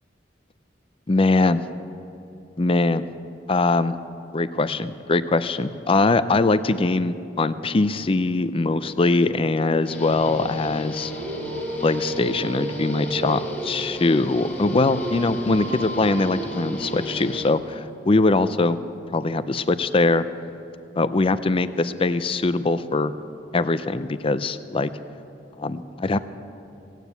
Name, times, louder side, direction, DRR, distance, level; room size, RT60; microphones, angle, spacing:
voice 1, 1.1-1.6 2.6-3.1 3.5-4.0 4.3-11.1 11.8-18.8 19.1-20.2 20.9-23.1 23.5-24.9 25.6-26.2, left 3 dB, 30° left, 13 dB, 0.5 m, -22 dB
Guitar, 9.9-17.5, equal, 10° left, 2.0 m, -34 dB
Dog, 10.9-17.3, right 1 dB, 65° right, 1.8 m, -34 dB
17.0 x 9.1 x 8.1 m, 2.8 s
head